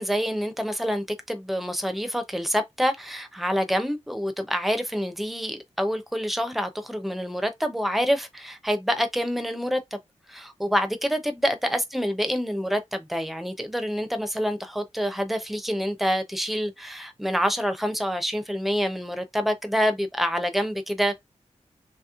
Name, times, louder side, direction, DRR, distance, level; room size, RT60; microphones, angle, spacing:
voice 1, 0.0-10.0 10.3-21.2, equal, ahead, 0.5 m, -27 dB
2.9 x 2.9 x 2.4 m
wide cardioid pair, 130°, 12 cm